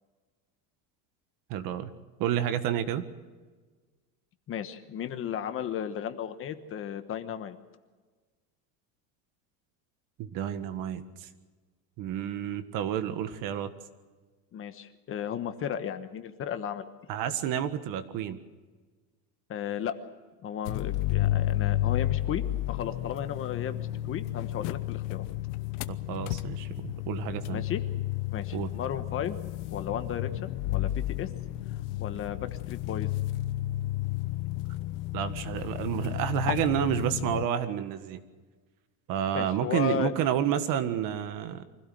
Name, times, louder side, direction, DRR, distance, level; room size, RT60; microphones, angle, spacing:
voice 1, 1.5-1.9 2.2-3.0 10.2-11.3 12.0-13.7 17.1-18.4 25.9-27.6 28.5-28.7 35.1-38.2 39.1-41.6, right 10 dB, 55° right, 10 dB, 1.7 m, -30 dB
voice 2, 4.5-7.6 14.5-16.8 19.5-19.9 20.4-25.3 27.5-27.8 28.3-29.4 29.7-31.3 32.0-33.1 39.3-40.1, left 9 dB, 35° left, 9 dB, 1.2 m, -34 dB
sound 1, 20.7-37.5, left 15 dB, 90° left, 1.1 m, -32 dB
25.0 x 16.5 x 7.8 m, 1.4 s
cardioid pair, 170°, 40 cm